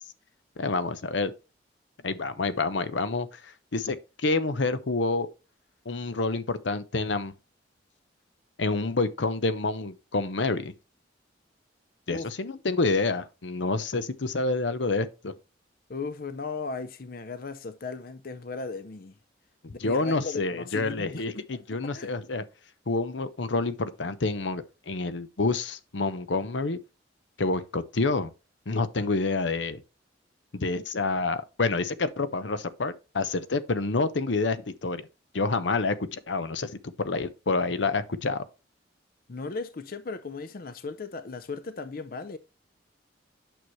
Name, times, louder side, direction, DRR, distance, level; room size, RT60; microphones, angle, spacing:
voice 1, 0.6-1.3 2.0-5.3 5.9-7.3 8.6-10.7 12.1-15.3 19.6-22.4 22.9-26.8 27.4-28.3 28.7-29.8 30.5-35.1 35.3-38.5, left 3 dB, 80° left, 0.8 m, -28 dB
voice 2, 15.9-19.1 19.7-21.2 21.5-21.6 21.9-22.2 39.3-42.4, left 4 dB, 50° left, 0.6 m, -37 dB
9.1 x 6.3 x 3.1 m
head